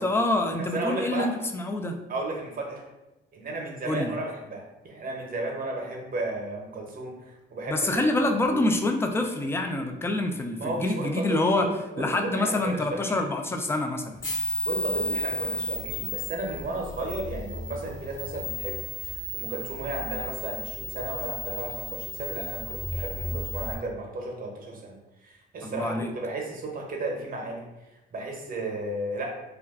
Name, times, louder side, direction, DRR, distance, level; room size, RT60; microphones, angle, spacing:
voice 1, 0.0-2.0 3.8-4.1 7.7-11.7 12.0-14.2 25.6-26.1, left 2 dB, 10° left, 4 dB, 0.3 m, -26 dB
voice 2, 0.6-1.3 2.1-2.8 3.3-7.8 8.5-8.6 10.6-13.3 14.6-27.6 28.1-29.3, right 2 dB, 45° right, 0 dB, 0.8 m, -34 dB
sound 1, 14.2-23.7, left 1 dB, 45° left, 1.2 m, -33 dB
2.3 x 2.2 x 3.5 m, 0.98 s
cardioid pair, 90°, 20 cm